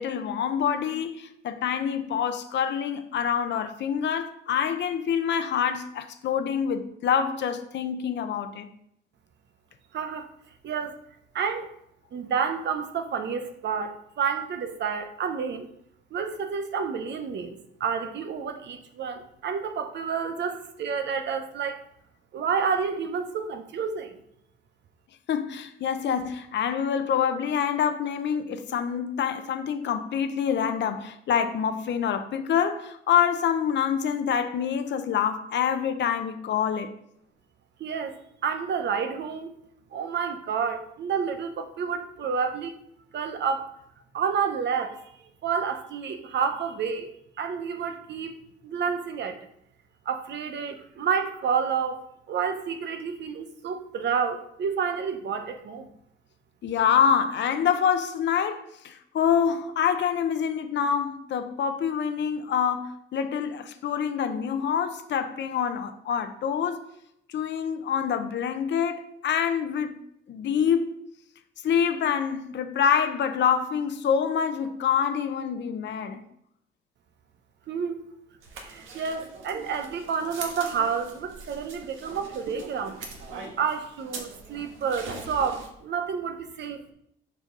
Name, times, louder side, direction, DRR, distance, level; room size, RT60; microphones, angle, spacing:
voice 1, 0.0-8.7 25.3-36.9 56.6-66.8 67.3-69.9 70.3-70.9 71.6-76.2, left 8 dB, 65° left, 0.8 m, -26 dB
voice 2, 9.9-10.3 10.6-11.0 11.3-11.7 12.1-15.7 16.1-21.8 22.3-24.2 37.8-38.2 38.4-39.5 39.9-42.7 43.1-43.7 44.1-45.0 45.4-47.1 47.4-49.4 50.0-55.9 77.7-78.1 78.6-83.0 83.6-86.8, right 6 dB, 65° right, 0.9 m, -29 dB
sound 1, 78.4-85.7, right 3 dB, 80° right, 1.4 m, -42 dB
6.6 x 5.1 x 3.9 m
cardioid pair, 90°, 20 cm